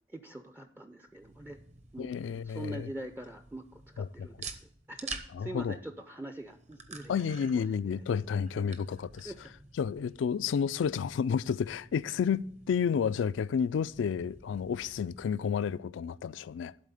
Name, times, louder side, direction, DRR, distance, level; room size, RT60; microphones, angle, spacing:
voice 1, 0.1-1.6 1.9-2.2 2.4-4.6 4.9-7.3 7.5-7.6 8.6-8.7 9.2-9.4, right 1 dB, 10° right, 0.4 m, -43 dB
sound 1, 1.1-15.3, right 4 dB, 40° right, 0.9 m, -49 dB
voice 2, 2.0-2.9 4.0-4.3 5.4-5.8 7.1-9.3 9.8-16.7, left 7 dB, 80° left, 0.3 m, -31 dB
12.0 x 4.1 x 7.7 m
head